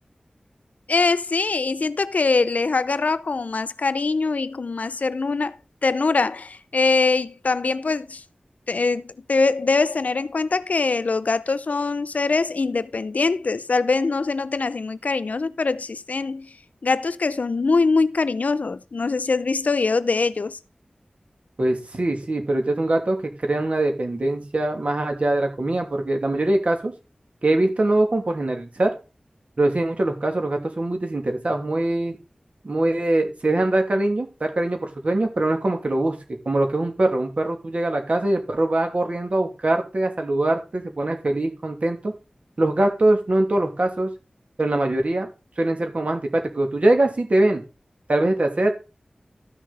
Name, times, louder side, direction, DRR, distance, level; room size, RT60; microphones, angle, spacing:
voice 1, 0.9-5.6 5.8-8.2 8.7-16.5 16.8-20.6, left 4 dB, 75° left, 0.6 m, -23 dB
voice 2, 21.6-26.9 27.4-28.9 29.6-32.2 32.6-36.2 36.4-42.1 42.6-44.1 44.6-45.3 45.6-47.6 48.1-48.7, right 2 dB, 60° right, 2.8 m, -22 dB
13.5 x 6.6 x 4.2 m
wide cardioid pair, 60°, 3 cm